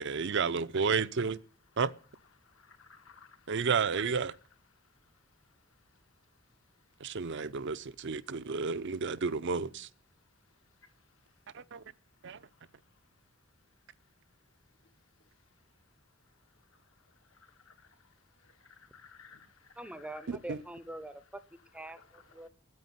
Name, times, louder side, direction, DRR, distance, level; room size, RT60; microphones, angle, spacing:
voice 1, 0.0-1.4 1.8-1.9 3.5-4.3 7.0-9.9 11.5-11.8 12.2-12.4 20.3-20.6, right 5 dB, 60° right, 0.6 m, -31 dB
voice 2, 2.7-3.3 3.5-3.7 17.7-17.8 18.9-19.5 19.8-20.3 21.9-22.2, left 6 dB, 75° left, 1.9 m, -56 dB
voice 3, 19.8-21.4 21.7-22.5, right 1 dB, 5° right, 0.6 m, -44 dB
9.7 x 8.5 x 9.5 m
head